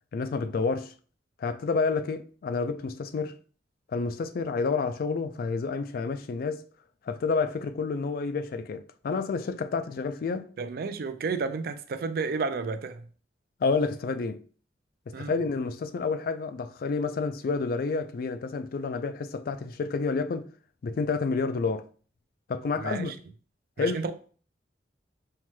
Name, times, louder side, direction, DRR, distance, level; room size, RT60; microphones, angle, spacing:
voice 1, 0.1-0.9 1.4-3.4 3.9-6.6 7.1-10.5 13.6-14.4 15.1-20.5 20.8-21.8 22.5-23.1 23.8-24.0, left 4 dB, 55° left, 0.3 m, -29 dB
voice 2, 10.6-13.1 15.1-15.4 22.8-23.1 23.8-24.1, right 4 dB, 60° right, 0.4 m, -31 dB
5.5 x 2.2 x 3.0 m
head